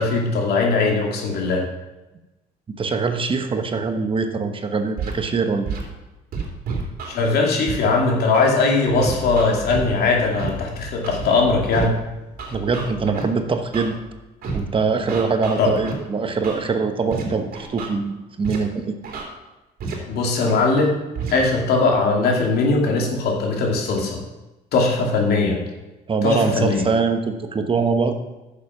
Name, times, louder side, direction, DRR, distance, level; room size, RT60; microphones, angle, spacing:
voice 1, 0.0-1.6 7.0-11.9 15.6-15.7 20.0-20.9 21.3-24.2 24.7-25.6 26.2-26.9, left 3 dB, 70° left, 0 dB, 2.5 m, -20 dB
voice 2, 2.7-5.7 12.5-13.9 14.5-18.9 26.1-28.2, right 4 dB, 30° right, 6 dB, 1.1 m, -23 dB
Scratching (performance technique), 5.0-5.1 5.6-5.8 6.3-7.1 7.7-7.8 8.3-8.5 9.0-9.9 10.4-10.5 11.0-11.3 11.7-11.9 12.4-13.2 13.7-13.9 14.4-14.6 15.1-15.9 16.4-16.6 17.1-17.2 17.5-17.9 18.4-18.6 19.0-19.2 19.8-19.9 20.5-20.6 21.1-21.3, right 5 dB, 60° right, 2.9 m, -29 dB
sound 1, 8.9-14.2, left 2 dB, 5° right, 3.5 m, -39 dB
10.0 x 7.0 x 6.0 m, 1.1 s
cardioid pair, 110°, 17 cm